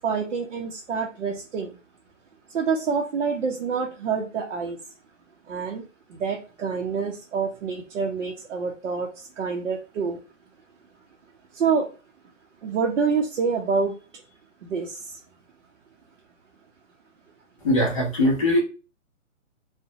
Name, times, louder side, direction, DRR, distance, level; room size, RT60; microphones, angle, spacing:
voice 1, 0.0-1.8 2.5-4.8 5.5-5.8 6.1-10.2 11.5-11.9 12.6-13.9 14.6-15.2, right 5 dB, 65° right, -1 dB, 0.6 m, -27 dB
voice 2, 17.6-18.6, left 1 dB, 25° left, -3 dB, 0.6 m, -21 dB
2.4 x 2.1 x 2.7 m, 0.33 s
hypercardioid pair, 175°, 39 cm